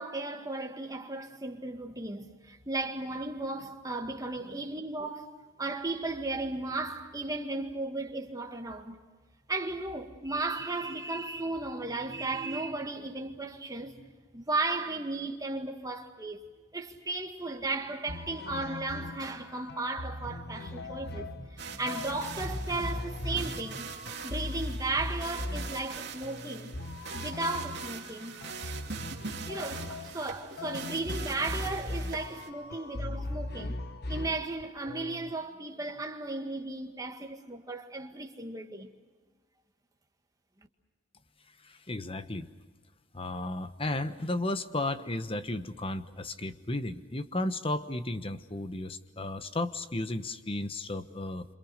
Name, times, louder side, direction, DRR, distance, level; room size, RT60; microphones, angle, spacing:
voice 1, 0.0-9.0 9.5-14.0 14.3-23.9 24.2-26.7 27.1-28.4 29.5-33.8 34.1-38.9, right 2 dB, 20° right, 2.0 m, -35 dB
sound 1, 18.1-35.4, left 2 dB, 60° left, 1.1 m, -39 dB
sound 2, 21.6-32.5, right 5 dB, 65° right, 2.8 m, -42 dB
voice 2, 41.6-42.5 43.1-51.4, left 2 dB, 30° left, 1.2 m, -34 dB
27.5 x 27.5 x 6.6 m
head